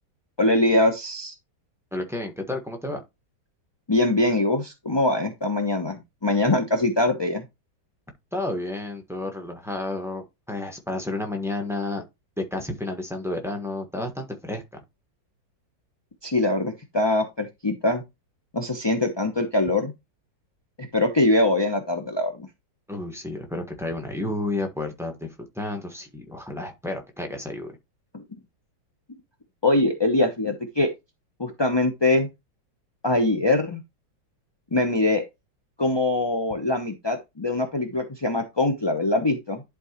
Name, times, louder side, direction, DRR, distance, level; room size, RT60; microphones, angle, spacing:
voice 1, 0.4-1.3 3.9-7.4 16.2-18.0 18.5-19.9 20.8-22.5 28.1-28.2 29.6-30.9 31.4-32.3 33.0-33.8 34.7-35.2 35.8-39.6, left 2 dB, 25° left, 0.5 m, -23 dB
voice 2, 1.9-3.0 8.3-12.0 12.5-14.6 22.9-27.8, left 2 dB, ahead, 1.1 m, -31 dB
11.0 x 4.5 x 3.0 m
omnidirectional pair, 2.0 m